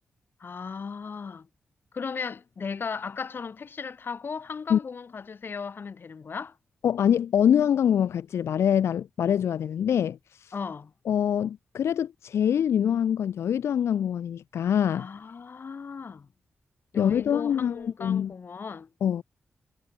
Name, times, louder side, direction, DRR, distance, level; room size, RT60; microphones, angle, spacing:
voice 1, 0.4-1.5 1.9-6.6 10.5-10.9 14.9-16.3 16.9-18.9, left 5 dB, 55° left, 5.6 m, -36 dB
voice 2, 6.8-10.5 11.1-15.1 16.9-18.3 19.0-19.2, left 9 dB, 85° left, 0.5 m, -24 dB
wide cardioid pair, 100°, 4 cm